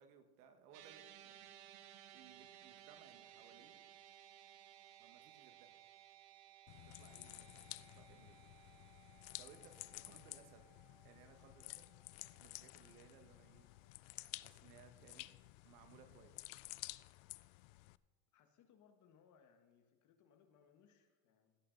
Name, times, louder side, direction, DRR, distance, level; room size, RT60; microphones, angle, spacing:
voice 1, 0.0-1.5 2.1-3.8 5.0-5.8 6.7-8.4 9.4-10.7 11.0-11.9 12.3-13.7 14.4-16.5, right 7 dB, 85° right, 8 dB, 1.5 m, -64 dB
sound 1, 0.7-13.2, right 11 dB, 50° right, 1.1 m, -61 dB
sound 2, 6.7-18.0, left 22 dB, 65° left, 0.5 m, -53 dB
voice 2, 9.9-10.4 18.3-21.6, left 7 dB, 40° left, 7 dB, 1.5 m, -70 dB
16.5 x 8.7 x 3.9 m, 1.3 s
supercardioid pair, 135°, 44 cm